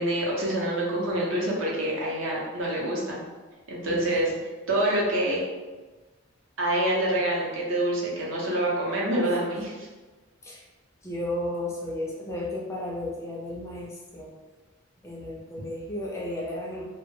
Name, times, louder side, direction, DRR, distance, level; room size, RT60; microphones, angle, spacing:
voice 1, 0.0-3.2 3.7-4.3 4.7-5.4 6.6-9.9, right 1 dB, 70° right, -4 dB, 0.7 m, -26 dB
voice 2, 3.8-4.4 10.4-10.6 11.0-14.3 15.0-16.9, left 1 dB, 15° left, -3 dB, 0.3 m, -34 dB
2.1 x 2.1 x 3.1 m, 1.3 s
head